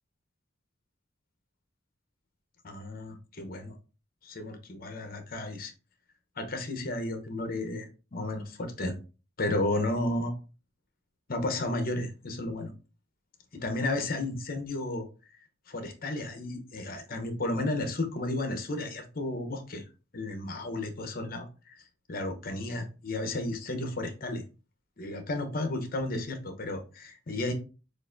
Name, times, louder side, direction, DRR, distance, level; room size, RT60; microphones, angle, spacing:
voice 1, 2.6-3.7 4.2-5.7 6.4-8.9 9.4-10.4 11.3-12.7 13.5-15.1 15.7-19.8 20.1-21.8 22.1-24.4 25.0-27.5, left 2 dB, 50° left, 6 dB, 0.9 m, -33 dB
6.4 x 2.5 x 2.5 m, 0.33 s
head